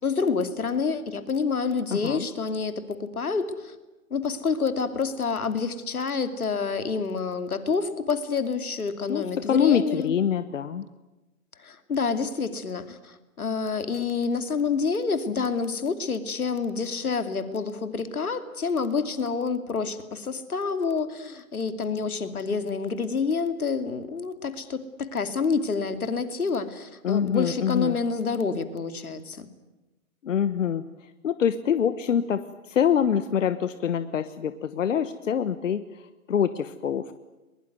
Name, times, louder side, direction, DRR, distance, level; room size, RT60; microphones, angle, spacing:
voice 1, 0.0-3.7 4.1-10.1 11.6-29.5, left 5 dB, 80° left, 10 dB, 2.8 m, -28 dB
voice 2, 1.9-2.3 9.1-10.8 27.0-28.0 30.2-30.8 31.2-35.8 36.3-37.1, left 8 dB, 60° left, 12 dB, 1.3 m, -25 dB
22.5 x 21.5 x 9.4 m, 1.1 s
hypercardioid pair, 140°, 43 cm